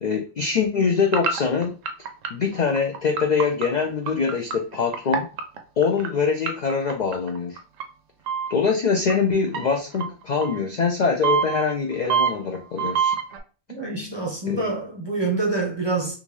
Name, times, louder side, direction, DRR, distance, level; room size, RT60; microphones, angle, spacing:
voice 1, 0.0-1.7 2.3-5.3 5.8-7.6 8.5-13.1 14.5-14.7, left 5 dB, 70° left, 0.4 m, -23 dB
sound 1, 1.1-6.1 6.5-7.8 8.3-8.7 9.1-9.2 9.5-10.6 11.2-13.4, right 7 dB, 85° right, 1.0 m, -25 dB
voice 2, 13.7-16.1, right 3 dB, 25° right, 0.6 m, -26 dB
3.5 x 2.5 x 3.1 m
omnidirectional pair, 1.3 m